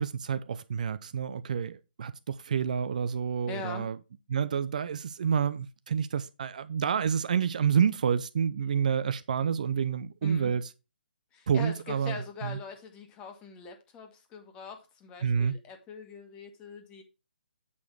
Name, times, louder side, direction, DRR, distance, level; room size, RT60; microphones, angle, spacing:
voice 1, 0.0-4.0 4.3-10.7 11.5-12.6 15.2-15.5, right 7 dB, 50° right, 0.5 m, -29 dB
voice 2, 3.5-3.9 10.2-10.5 11.3-17.0, left 5 dB, 20° left, 1.5 m, -42 dB
8.3 x 5.0 x 4.5 m
figure-of-eight pair, 140°, 5 cm